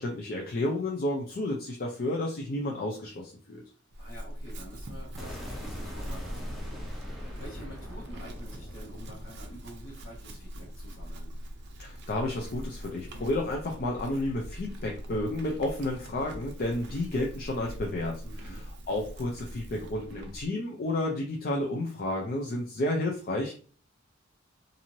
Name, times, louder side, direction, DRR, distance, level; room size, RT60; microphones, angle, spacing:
voice 1, 0.0-3.6 11.8-23.5, left 1 dB, 50° left, 0 dB, 0.5 m, -31 dB
Chewing mastication / Livestock farm animals working animals, 3.9-20.5, equal, 55° right, 0.5 m, -42 dB
voice 2, 4.0-11.3 18.2-18.6, right 1 dB, 65° left, -7 dB, 1.1 m, -48 dB
sound 1, 5.2-11.2, equal, ahead, 0.7 m, -44 dB
2.9 x 2.6 x 2.6 m, 0.41 s
head